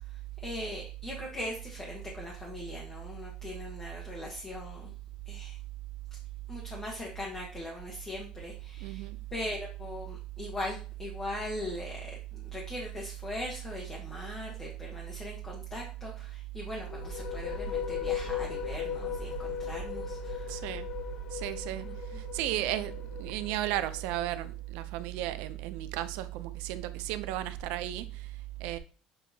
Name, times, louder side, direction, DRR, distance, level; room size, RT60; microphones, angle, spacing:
voice 1, 0.4-4.9 5.3-5.6 6.5-20.6 21.8-22.2, left 1 dB, 20° left, 1.0 m, -40 dB
voice 2, 8.8-9.2 20.5-20.9 21.3-21.9 22.1-22.9 23.2-28.3 28.6-28.8, right 13 dB, 85° right, 0.4 m, -34 dB
sound 1, 16.8-24.4, left 8 dB, 55° left, 0.7 m, -37 dB
7.0 x 2.8 x 2.7 m
cardioid pair, 145°, 2 cm